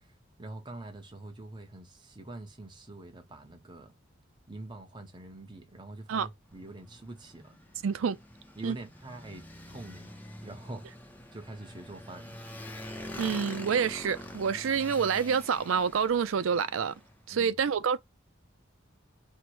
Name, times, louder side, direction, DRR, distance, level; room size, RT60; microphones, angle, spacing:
voice 1, 0.0-3.9 4.5-7.6 8.6-10.2 10.4-10.9 11.3-12.4 17.3-17.6, right 2 dB, 25° right, 0.8 m, -45 dB
Motorcycle, 6.5-17.2, left 1 dB, 10° left, 0.6 m, -45 dB
voice 2, 7.8-8.2 8.6-8.8 13.2-16.9 17.3-18.0, right 6 dB, 85° right, 0.4 m, -27 dB
4.5 x 2.1 x 4.5 m
head